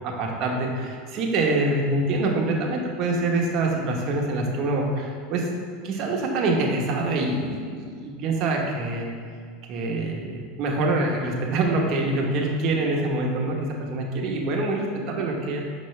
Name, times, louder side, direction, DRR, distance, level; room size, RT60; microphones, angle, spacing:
voice 1, 0.0-5.5 5.8-9.1 9.7-15.6, right 2 dB, 45° right, 0 dB, 1.1 m, -25 dB
6.0 x 5.8 x 3.2 m, 2.1 s
supercardioid pair, 135°, 0 cm